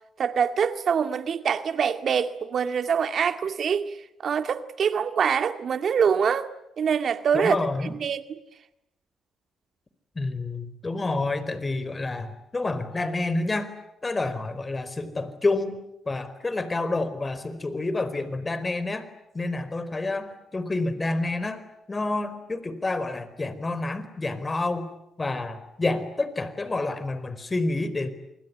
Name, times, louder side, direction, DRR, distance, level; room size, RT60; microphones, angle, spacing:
voice 1, 0.2-4.0 4.2-6.5 6.8-7.6 7.9-8.2, right 7 dB, 60° right, 2.1 m, -24 dB
voice 2, 7.3-7.9 10.1-13.7 14.0-15.8 16.0-19.1 19.3-21.6 21.9-24.9 25.2-28.1, left 2 dB, 30° left, 4.5 m, -28 dB
28.0 x 21.5 x 9.9 m
hypercardioid pair, 50°, 0 cm